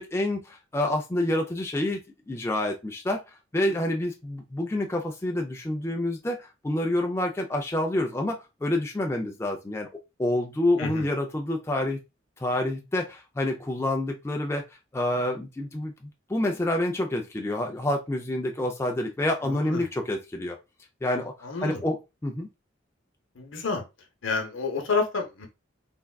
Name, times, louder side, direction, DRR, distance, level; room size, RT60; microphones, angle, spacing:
voice 1, 0.0-2.0 2.3-3.2 3.5-9.9 10.2-12.0 12.4-14.6 14.9-15.9 16.3-20.6 21.0-21.3 21.6-22.5, left 1 dB, 15° left, 0.3 m, -28 dB
voice 2, 10.8-11.1 19.4-19.8 21.4-21.8 23.4-23.8 24.2-25.5, left 4 dB, 85° left, 0.8 m, -29 dB
3.4 x 2.2 x 2.2 m
head